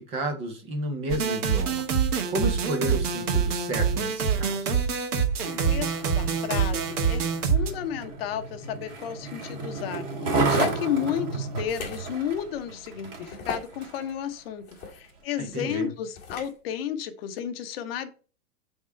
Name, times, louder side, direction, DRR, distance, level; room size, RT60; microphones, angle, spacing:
voice 1, 0.0-1.9 2.3-4.8 15.4-15.9, right 1 dB, 15° right, 0.5 m, -31 dB
sound 1, 1.1-7.7, right 6 dB, 80° right, 1.7 m, -25 dB
Skateboard, 5.3-14.1 14.7-14.8, right 3 dB, 40° right, 2.3 m, -32 dB
voice 2, 5.5-10.1 10.5-18.1, left 9 dB, 40° left, 0.9 m, -32 dB
sound 2, 11.6-12.0 12.5-12.6 13.3-13.8 14.6-15.0 16.2-16.5, left 5 dB, 20° left, 1.7 m, -37 dB
7.8 x 3.7 x 4.3 m
hypercardioid pair, 160°, 44 cm